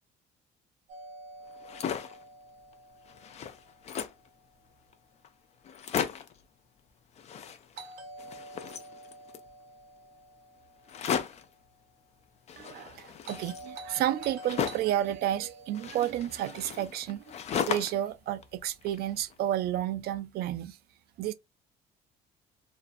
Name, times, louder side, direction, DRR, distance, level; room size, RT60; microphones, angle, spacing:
Doorbell, 0.9-4.9 7.8-12.0 13.2-17.7, right 1 dB, 80° right, 0.9 m, -49 dB
sound 1, 1.5-2.2 2.7-2.8 3.0-4.3 4.9-5.0 5.2-5.3 5.6-6.4 7.1-9.5 10.9-11.5 12.5-15.0 15.7-18.1 18.4-19.3, left 8 dB, 40° left, 0.4 m, -36 dB
voice 1, 12.6-17.3 17.7-20.8 21.2-21.3, right 12 dB, 65° right, 0.4 m, -31 dB
2.5 x 2.0 x 2.5 m
cardioid pair, 110°, 17 cm